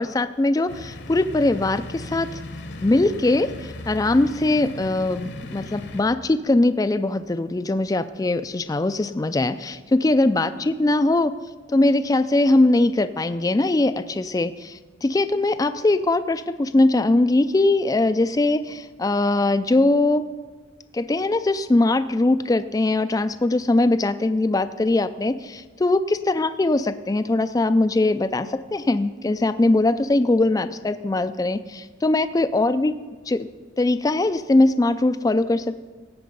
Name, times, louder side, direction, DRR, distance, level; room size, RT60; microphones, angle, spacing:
voice 1, 0.0-2.4 2.8-11.3 11.7-20.2 20.9-32.9 33.3-33.5 33.8-35.8, left 2 dB, 20° left, 12 dB, 0.3 m, -21 dB
sound 1, 0.7-6.0, left 2 dB, 55° left, 1.0 m, -37 dB
17.5 x 7.7 x 5.3 m, 1.3 s
head